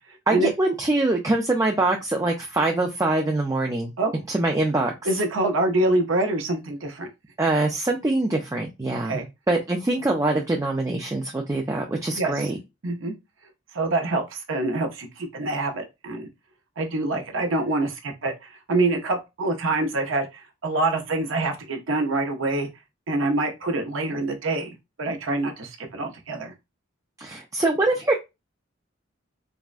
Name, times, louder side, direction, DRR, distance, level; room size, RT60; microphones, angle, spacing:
voice 1, 0.3-3.9 4.3-4.9 7.4-9.2 9.5-12.6 27.2-28.2, right 2 dB, 15° right, 0.3 m, -24 dB
voice 2, 5.0-7.1 9.0-9.3 12.1-12.5 12.8-13.1 13.7-16.3 16.8-22.7 23.1-26.5, right 2 dB, 75° right, 0.7 m, -26 dB
3.5 x 2.1 x 2.4 m
head